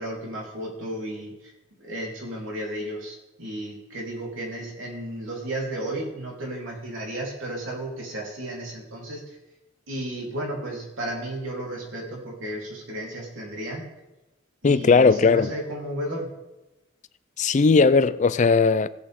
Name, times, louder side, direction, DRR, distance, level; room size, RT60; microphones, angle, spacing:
voice 1, 0.0-1.5 1.8-9.4 9.9-13.9 14.6-16.3, right 1 dB, 90° right, 3.8 m, -33 dB
voice 2, 14.6-15.5 17.4-18.9, left 4 dB, 40° left, 0.4 m, -18 dB
17.0 x 8.3 x 3.7 m
head